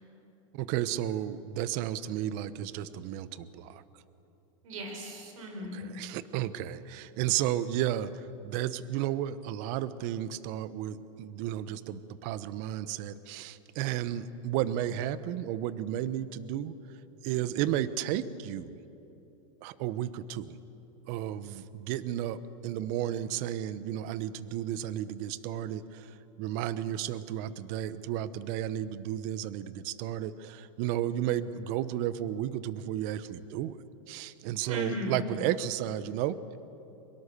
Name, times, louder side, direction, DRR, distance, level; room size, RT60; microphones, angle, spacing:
voice 1, 0.5-3.8 5.7-16.7 17.2-18.8 19.6-20.6 21.1-33.8 34.1-36.4, right 11 dB, 50° right, 16 dB, 1.0 m, -33 dB
voice 2, 4.6-5.9 34.7-35.4, left 1 dB, 80° right, 4 dB, 5.0 m, -37 dB
23.5 x 22.0 x 6.8 m, 3.0 s
supercardioid pair, 125°, 17 cm